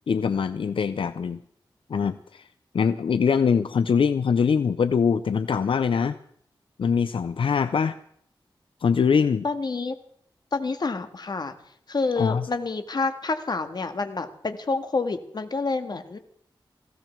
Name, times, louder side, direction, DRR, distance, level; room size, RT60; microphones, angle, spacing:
voice 1, 0.0-1.4 1.9-2.4 2.7-6.2 6.8-8.0 8.8-9.4 12.2-12.5, left 6 dB, 85° left, 13 dB, 0.6 m, -23 dB
voice 2, 9.4-10.0 10.5-11.5 11.9-16.2, left 3 dB, 55° left, 8 dB, 1.8 m, -28 dB
19.5 x 16.0 x 4.6 m, 0.67 s
wide cardioid pair, 110°, 9 cm